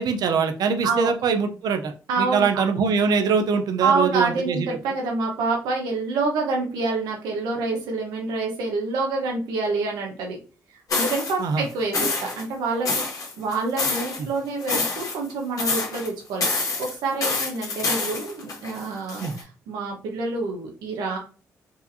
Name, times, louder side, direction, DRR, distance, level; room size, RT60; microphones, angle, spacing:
voice 1, 0.0-1.9 2.2-4.7 11.4-11.7 14.2-14.3 19.2-19.3, right 5 dB, 70° right, 7 dB, 0.6 m, -23 dB
voice 2, 2.1-2.5 3.8-10.4 10.9-12.1 12.4-21.2, right 3 dB, 90° right, 0 dB, 1.1 m, -27 dB
sound 1, 10.9-11.3 11.9-12.4 12.9-14.2 14.6-15.3 15.6-16.1 16.4-19.4, left 3 dB, 55° left, 1.5 m, -26 dB
4.7 x 2.5 x 2.7 m, 0.36 s
cardioid pair, 75°, 7 cm